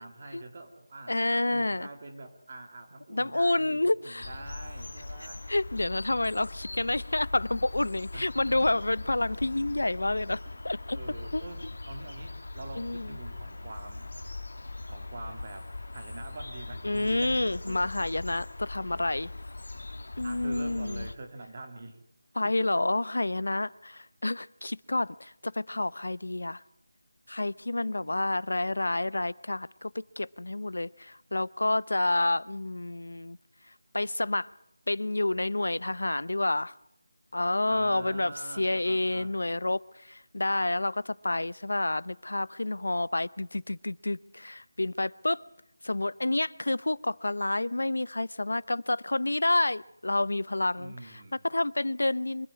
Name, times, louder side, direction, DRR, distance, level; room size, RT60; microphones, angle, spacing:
voice 1, 0.0-5.4 8.1-8.8 10.5-10.6 10.9-14.1 14.9-18.1 18.9-19.0 20.2-22.0 22.4-22.8 25.7-25.8 27.8-28.2 37.7-39.3 50.8-51.5, right 2 dB, 30° right, 2.5 m, -45 dB
voice 2, 1.1-1.9 3.1-4.3 5.5-11.0 11.3-11.4 12.8-13.2 16.8-19.3 20.2-21.1 22.4-26.6 27.3-29.9 30.2-33.4 33.9-34.5 34.9-36.7 37.3-45.4 45.8-52.5, left 2 dB, 85° left, 0.8 m, -29 dB
sound 1, 4.2-21.2, left 2 dB, 70° left, 1.6 m, -40 dB
24.5 x 13.5 x 9.6 m
figure-of-eight pair, 175°, 0 cm